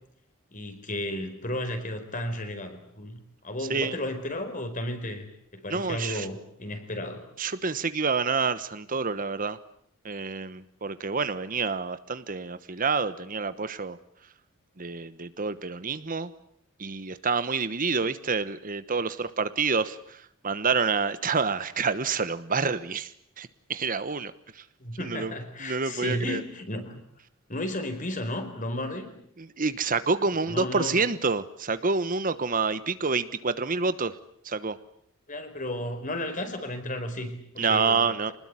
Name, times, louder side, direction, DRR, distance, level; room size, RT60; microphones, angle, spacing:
voice 1, 0.5-5.3 5.5-7.2 24.8-27.0 27.5-29.1 30.5-31.0 35.3-38.3, left 1 dB, 40° left, 7 dB, 4.6 m, -33 dB
voice 2, 5.7-6.3 7.4-9.6 10.0-14.0 14.8-16.3 16.8-23.1 23.4-24.6 25.0-25.3 25.6-26.4 29.6-34.1 34.4-34.8 37.6-38.3, right 4 dB, 40° right, 13 dB, 1.1 m, -28 dB
27.0 x 20.5 x 9.8 m, 0.70 s
head